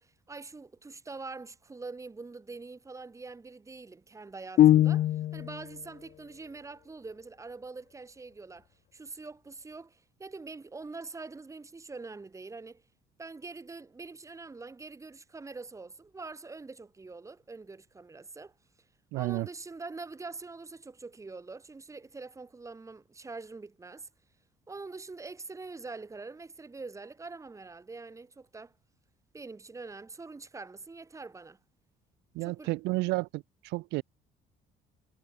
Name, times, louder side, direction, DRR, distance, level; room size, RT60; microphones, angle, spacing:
voice 1, 0.0-8.7 8.9-12.8 13.2-18.5 19.1-24.1 24.7-28.7 29.3-31.6 32.4-32.7, right 3 dB, 20° right, 2.2 m, -44 dB
sound 1, 4.6-5.6, left 13 dB, 50° left, 0.4 m, -21 dB
voice 2, 19.1-19.5 32.3-34.0, right 22 dB, 90° right, 0.6 m, -31 dB
cardioid pair, 110°, 17 cm